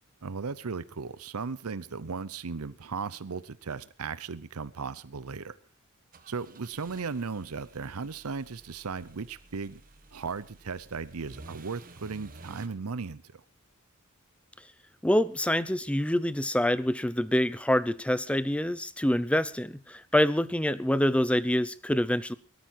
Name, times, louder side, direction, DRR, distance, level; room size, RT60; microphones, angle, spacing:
voice 1, 0.2-5.6 6.3-9.8 10.1-13.4, right 5 dB, 85° right, 16 dB, 0.7 m, -36 dB
sound 1, 6.1-12.7, right 2 dB, 40° right, 1.5 m, -52 dB
voice 2, 15.0-22.3, left 1 dB, 5° left, 16 dB, 0.6 m, -26 dB
17.5 x 13.0 x 4.5 m, 0.38 s
head